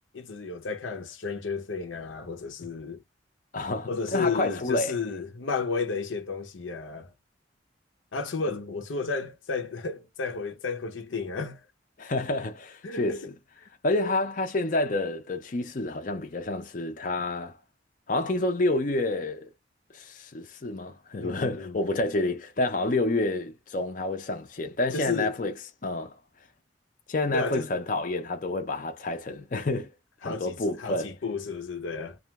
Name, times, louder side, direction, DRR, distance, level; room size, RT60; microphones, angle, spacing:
voice 1, 0.1-3.0 3.9-7.1 8.1-11.6 12.8-13.3 13.6-13.7 21.2-21.8 24.9-25.3 27.3-27.7 30.2-32.2, left 4 dB, 85° left, 0.7 m, -32 dB
voice 2, 3.5-4.9 8.5-8.7 12.0-13.2 13.8-17.5 18.1-19.5 19.9-25.5 25.8-26.1 27.1-29.9 30.2-31.1, left 2 dB, 40° left, 0.5 m, -29 dB
2.4 x 2.2 x 3.0 m
head